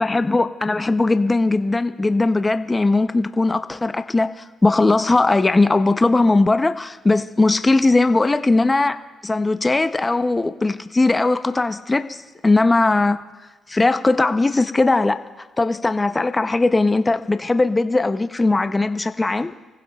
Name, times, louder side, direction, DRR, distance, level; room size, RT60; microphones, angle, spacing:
voice 1, 0.0-13.2 13.7-19.5, left 2 dB, 20° left, 9 dB, 0.6 m, -19 dB
26.0 x 15.5 x 2.3 m, 1.2 s
cardioid pair, 90°, 0 cm